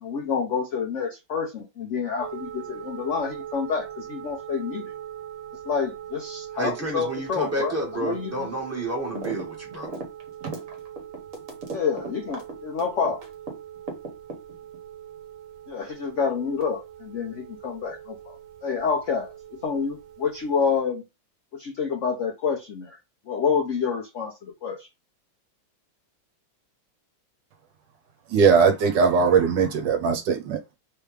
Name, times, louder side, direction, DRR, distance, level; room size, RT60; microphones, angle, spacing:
voice 1, 0.0-4.9 5.6-7.7 8.0-8.5 11.7-13.2 15.7-21.0 21.5-23.0 23.3-24.9, left 6 dB, 70° left, 0.7 m, -28 dB
sound 1, 2.2-20.8, right 10 dB, 90° right, 1.4 m, -42 dB
voice 2, 6.6-9.9, right 2 dB, 10° right, 1.0 m, -30 dB
sound 2, 9.2-9.4 9.7-13.5 13.9-14.8, right 3 dB, 50° right, 1.3 m, -35 dB
voice 3, 28.3-30.7, right 5 dB, 70° right, 1.3 m, -20 dB
3.4 x 3.3 x 3.2 m
omnidirectional pair, 2.1 m